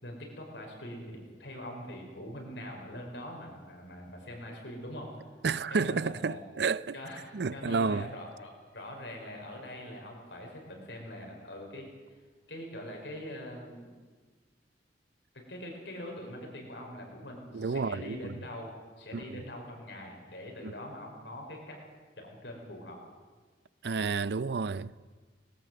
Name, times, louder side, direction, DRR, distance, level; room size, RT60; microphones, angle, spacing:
voice 1, 0.0-5.1 5.7-6.4 6.9-7.2 7.5-12.2 12.5-13.9 15.3-18.7 19.0-21.8 22.2-23.0, left 1 dB, 85° left, 5.5 m, -43 dB
voice 2, 5.4-7.0 7.3-8.1 17.5-18.3 19.1-19.4 20.6-20.7 23.8-25.1, right 4 dB, 65° right, 0.5 m, -31 dB
19.0 x 18.0 x 7.7 m
head